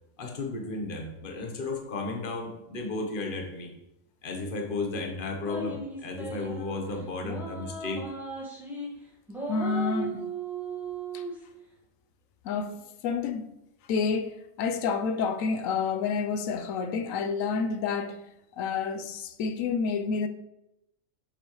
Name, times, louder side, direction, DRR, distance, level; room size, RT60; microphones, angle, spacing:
voice 1, 0.2-3.7 4.2-8.0, left 3 dB, 40° left, 1.2 m, -34 dB
sound 1, 5.5-6.8 7.2-8.9 9.3-11.3, right 2 dB, ahead, 1.6 m, -36 dB
voice 2, 9.5-10.3 11.1-11.2 12.4-13.5 13.9-18.3 18.6-20.3, left 5 dB, 75° left, 1.0 m, -29 dB
7.5 x 6.8 x 3.2 m
omnidirectional pair, 1.4 m